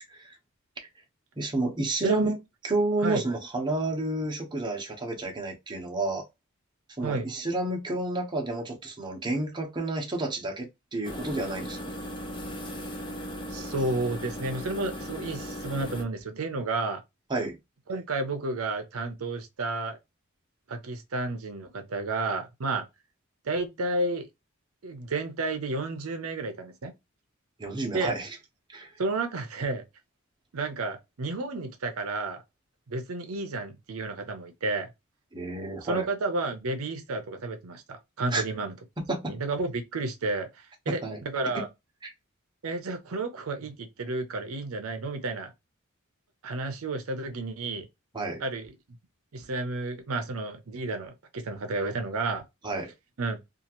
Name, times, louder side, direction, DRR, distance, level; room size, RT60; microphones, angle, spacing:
voice 1, 1.4-2.4 2.6-6.2 7.0-11.8 17.3-17.6 27.6-28.3 28.7-28.9 35.3-36.1 38.3-38.4 39.0-39.3 40.9-41.2 48.1-48.4 52.6-52.9, right 2 dB, 20° right, 0.8 m, -30 dB
sound 1, 11.0-16.0, equal, 25° left, 0.6 m, -37 dB
voice 2, 13.5-17.0 17.9-20.0 20.7-22.8 23.4-24.3 24.8-26.9 27.9-28.1 29.0-29.8 30.5-32.4 32.9-34.9 35.8-38.7 39.3-41.7 42.6-45.5 46.4-47.9 48.4-48.7 49.3-52.4 53.2-53.4, right 2 dB, 75° right, 0.6 m, -31 dB
2.8 x 2.4 x 2.9 m
head